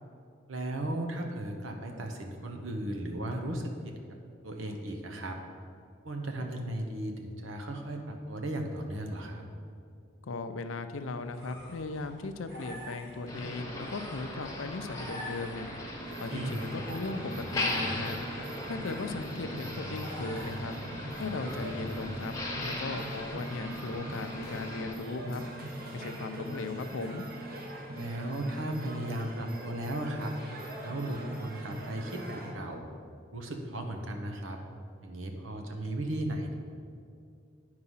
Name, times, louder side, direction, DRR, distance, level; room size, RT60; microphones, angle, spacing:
voice 1, 0.5-4.2 4.4-5.4 6.0-9.4 16.3-16.7 27.9-30.3 30.8-32.8 33.3-34.6 35.0-36.6, right 1 dB, 85° right, 3 dB, 1.0 m, -36 dB
voice 2, 10.2-15.7 16.2-18.2 18.6-20.7 21.2-22.3 22.6-25.4 25.9-27.3, left 3 dB, 90° left, 9 dB, 0.5 m, -37 dB
sound 1, 10.9-22.1, equal, 70° right, 2.3 m, -48 dB
Motor vehicle (road), 13.3-24.9, left 1 dB, 15° left, 0.9 m, -38 dB
sound 2, 16.0-32.5, right 1 dB, 45° right, 1.1 m, -41 dB
9.6 x 4.8 x 5.6 m, 2.3 s
head